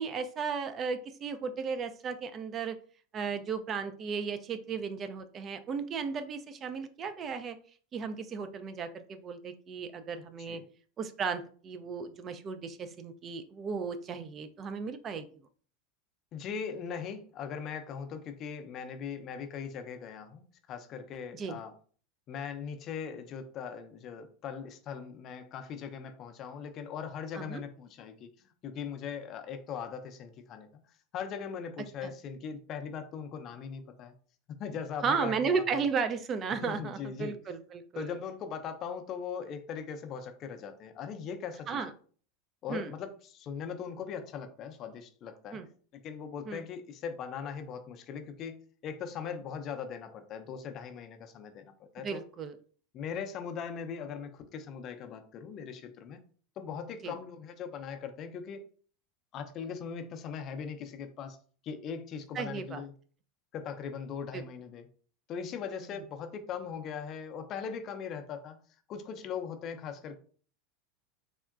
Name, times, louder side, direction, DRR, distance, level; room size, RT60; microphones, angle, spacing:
voice 1, 0.0-2.8 3.1-7.6 7.9-10.6 11.0-15.2 21.3-21.6 27.3-27.6 32.0-32.1 35.0-38.1 41.7-41.9 42.7-42.9 45.5-45.7 46.5-46.6 52.0-52.6 57.0-57.1 62.4-62.8 64.3-64.4 65.8-65.9, right 5 dB, 35° right, 0.3 m, -35 dB
voice 2, 16.3-21.7 22.3-30.7 31.1-34.1 34.6-35.8 36.6-37.4 38.0-41.8 42.6-45.6 46.0-52.2 52.9-56.2 56.6-58.6 59.3-61.4 61.6-62.9 63.5-64.9 65.3-68.6 68.9-70.2, left 7 dB, 45° left, 0.5 m, -40 dB
3.5 x 2.1 x 2.4 m
hypercardioid pair, 95°, 0 cm